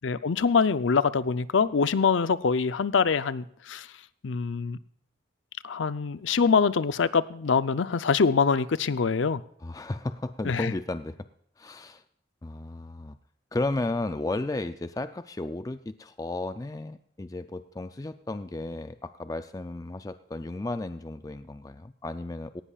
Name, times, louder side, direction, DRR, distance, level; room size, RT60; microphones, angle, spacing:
voice 1, 0.0-3.9 4.2-4.8 5.6-9.4 10.4-10.7, left 5 dB, 85° left, 15 dB, 0.6 m, -24 dB
voice 2, 9.6-11.2 11.6-12.0 12.4-13.2 13.5-22.6, left 2 dB, 20° left, 11 dB, 0.4 m, -34 dB
18.0 x 15.5 x 2.4 m, 0.67 s
head